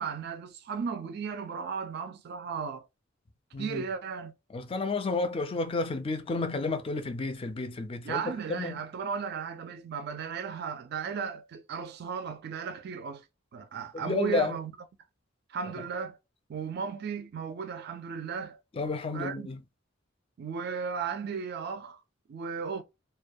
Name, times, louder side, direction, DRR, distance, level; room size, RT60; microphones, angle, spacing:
voice 1, 0.0-2.9 3.6-4.3 8.0-13.3 13.5-14.7 15.5-16.2 16.5-18.6 19.1-19.5 20.4-22.0 22.3-22.8, right 6 dB, 55° right, 0.3 m, -35 dB
voice 2, 3.5-3.8 4.5-8.8 13.9-14.5 15.8-15.9 18.7-19.6, left 3 dB, 30° left, 0.4 m, -31 dB
2.2 x 2.2 x 2.6 m
head